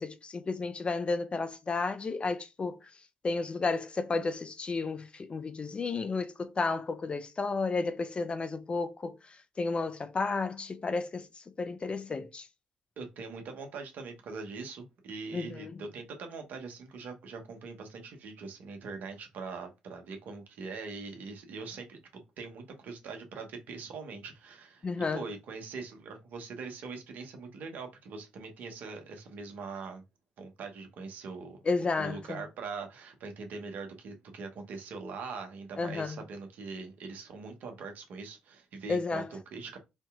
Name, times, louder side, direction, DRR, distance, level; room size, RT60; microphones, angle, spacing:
voice 1, 0.0-2.8 3.2-11.3 11.6-12.5 15.3-15.8 24.8-25.2 31.7-32.4 35.8-36.2 38.9-39.3, left 4 dB, 35° left, 0.5 m, -32 dB
voice 2, 13.0-24.9 25.1-30.0 30.4-39.8, right 4 dB, 65° right, 0.9 m, -42 dB
4.4 x 2.8 x 2.4 m
hypercardioid pair, 50°, 3 cm